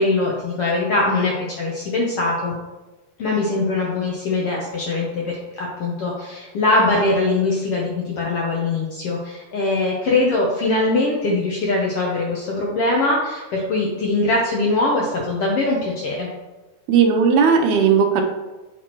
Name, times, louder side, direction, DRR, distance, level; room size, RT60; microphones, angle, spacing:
voice 1, 0.0-2.5 3.2-16.3, left 2 dB, 70° left, -2 dB, 1.4 m, -22 dB
voice 2, 16.9-18.2, right 6 dB, 80° right, 4 dB, 2.1 m, -16 dB
8.3 x 4.7 x 3.0 m, 1.1 s
omnidirectional pair, 3.6 m